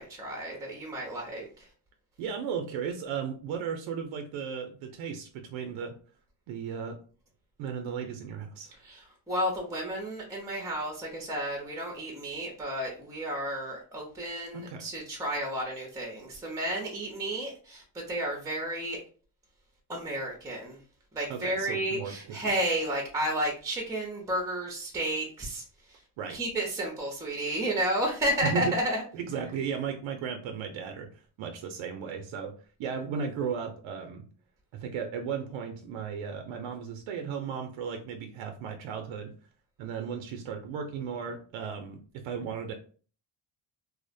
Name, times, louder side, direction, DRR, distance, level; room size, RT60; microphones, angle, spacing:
voice 1, 0.0-1.6 8.9-9.0 9.3-19.0 19.9-20.8 21.1-25.6 26.3-29.0, right 1 dB, 10° right, 1 dB, 0.6 m, -32 dB
voice 2, 2.2-5.9 6.5-7.0 7.6-8.8 14.5-14.9 21.3-22.5 26.2-26.4 28.4-28.8 29.1-34.3 34.7-39.3 39.8-42.7, right 6 dB, 85° right, 4 dB, 0.5 m, -35 dB
2.4 x 2.0 x 2.5 m, 0.39 s
cardioid pair, 90°, 46 cm